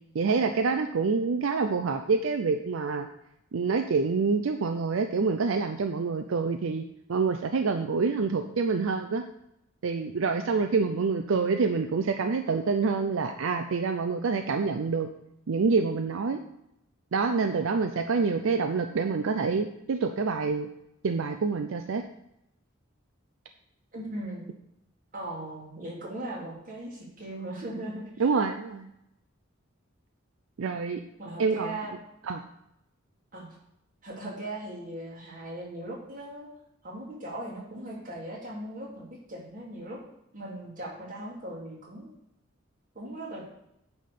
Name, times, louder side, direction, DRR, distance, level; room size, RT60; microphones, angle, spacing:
voice 1, 0.1-3.1 3.5-6.8 7.1-9.2 9.8-15.1 15.5-16.4 17.1-20.7 21.0-22.0 28.2-28.9 30.6-31.0 31.4-31.8 32.2-32.4, right 4 dB, 80° right, 7 dB, 0.5 m, -27 dB
voice 2, 23.9-24.5 25.1-28.0 31.2-31.9 33.3-33.5 34.0-36.5 36.8-40.0 40.3-42.1 42.9-43.5, right 1 dB, 45° right, -5 dB, 2.9 m, -38 dB
9.2 x 3.6 x 6.6 m, 0.81 s
head